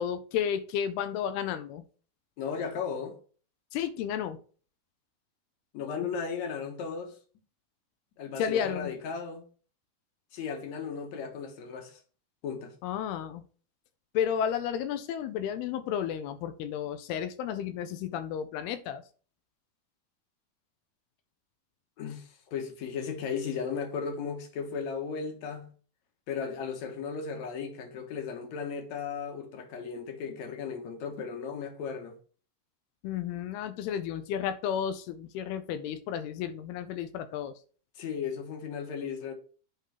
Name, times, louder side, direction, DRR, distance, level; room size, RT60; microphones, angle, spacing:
voice 1, 0.0-1.8 3.7-4.4 8.4-8.9 12.8-13.4 14.1-19.0 33.0-37.5, left 9 dB, 85° left, 2.7 m, -32 dB
voice 2, 2.4-3.2 5.7-7.2 8.2-9.5 10.3-12.0 12.4-12.7 22.0-25.7 26.3-32.2 38.0-39.3, left 6 dB, 60° left, 2.0 m, -36 dB
8.5 x 3.8 x 5.7 m
omnidirectional pair, 4.5 m